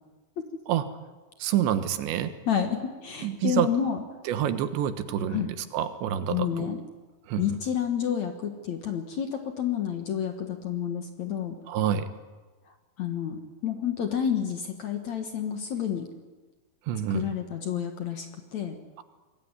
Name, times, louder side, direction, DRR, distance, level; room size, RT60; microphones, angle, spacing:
voice 1, 1.4-2.3 3.2-3.7 4.3-6.7 7.3-7.6 11.7-12.1 16.9-17.3, right 10 dB, 85° right, 10 dB, 3.6 m, -27 dB
voice 2, 2.5-4.0 5.3-5.5 6.3-6.8 7.4-11.6 13.0-16.1 17.1-18.8, left 9 dB, 55° left, 6 dB, 2.1 m, -29 dB
26.0 x 21.5 x 9.8 m, 1.3 s
omnidirectional pair, 5.0 m